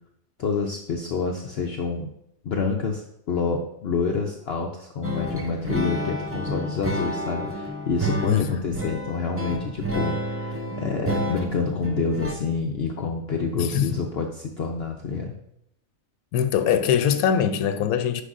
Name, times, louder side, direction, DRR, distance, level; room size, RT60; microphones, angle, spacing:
voice 1, 0.4-2.1 2.4-15.4, left 4 dB, 60° left, 0.7 m, -28 dB
sound 1, 5.0-12.3, right 1 dB, 20° right, 0.4 m, -30 dB
voice 2, 8.3-8.8 13.6-13.9 16.3-18.2, left 8 dB, 85° left, 1.1 m, -22 dB
9.8 x 5.4 x 2.6 m
omnidirectional pair, 1.5 m